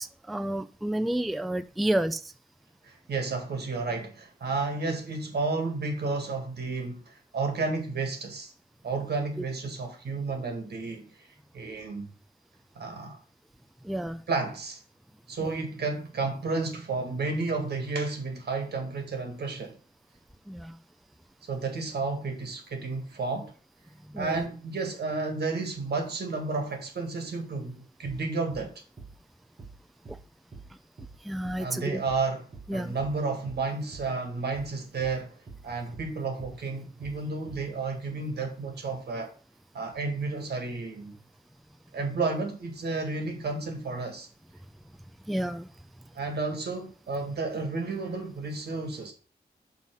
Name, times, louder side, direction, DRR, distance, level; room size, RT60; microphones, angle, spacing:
voice 1, 0.0-2.3 9.4-9.5 13.8-14.2 15.4-15.5 20.5-20.8 24.0-24.4 30.1-30.2 30.7-30.8 31.2-32.0 32.7-33.0 45.2-45.7, right 1 dB, ahead, 0.3 m, -31 dB
voice 2, 2.8-8.5 8.8-11.3 11.5-12.1 12.8-13.2 14.3-14.8 15.3-19.8 21.5-23.5 24.2-28.7 31.6-32.4 32.7-35.4 35.6-39.3 39.7-41.2 41.9-44.3 46.1-49.1, right 3 dB, 80° right, 1.8 m, -32 dB
sound 1, 28.0-28.2 28.5-28.7 29.0-29.2 29.6-29.8 30.0-30.2 30.5-30.7 31.0-31.2 31.4-31.6 32.1-32.3 32.5-32.7 33.0-33.2 33.4-33.7 33.9-34.1 34.5-34.7 35.0-35.2 35.5-35.7 35.9-36.1 36.4-36.6 37.0-37.2 37.5-37.7, right 4 dB, 40° right, 1.2 m, -46 dB
5.7 x 4.0 x 5.9 m
wide cardioid pair, 120°, 17 cm